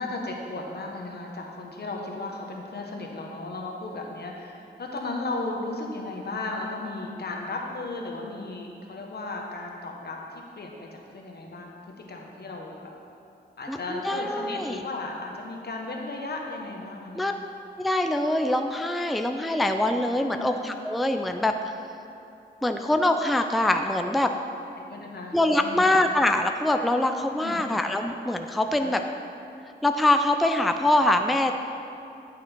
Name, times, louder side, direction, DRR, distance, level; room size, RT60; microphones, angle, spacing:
voice 1, 0.0-12.7 13.6-17.3 20.2-20.5 24.9-25.4 25.6-25.9 27.4-27.7 28.8-29.0, left 2 dB, 65° left, 0 dB, 1.3 m, -35 dB
voice 2, 13.7-14.8 17.2-17.3 17.8-21.7 22.6-24.3 25.3-29.0 29.8-31.5, left 1 dB, ahead, 6 dB, 0.4 m, -24 dB
11.0 x 6.0 x 4.5 m, 2.7 s
cardioid pair, 70°, 18 cm